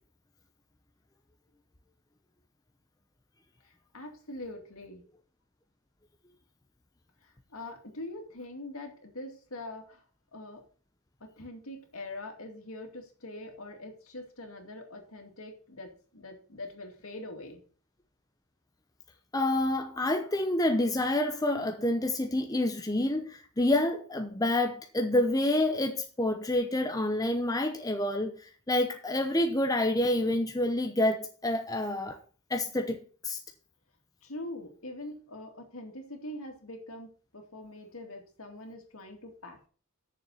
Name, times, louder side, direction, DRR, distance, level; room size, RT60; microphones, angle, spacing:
voice 1, 3.6-5.0 7.2-10.0 10.3-10.6 11.2-17.6 34.2-39.7, left 1 dB, 70° left, 2.4 m, -43 dB
voice 2, 19.3-32.2 32.5-33.4, left 1 dB, 15° left, 0.7 m, -28 dB
6.9 x 6.6 x 7.1 m
head